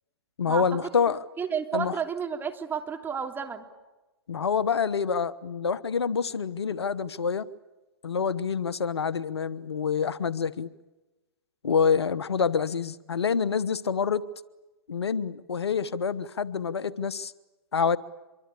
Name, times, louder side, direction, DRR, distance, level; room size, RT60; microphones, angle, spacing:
voice 1, 0.4-1.2 1.7-2.0 4.3-7.5 8.0-10.7 11.6-14.2 14.9-17.3 17.7-18.0, left 6 dB, 85° left, 1.1 m, -27 dB
voice 2, 1.4-3.7, right 7 dB, 15° right, 3.0 m, -31 dB
25.5 x 23.5 x 8.4 m
hypercardioid pair, 120°, 13 cm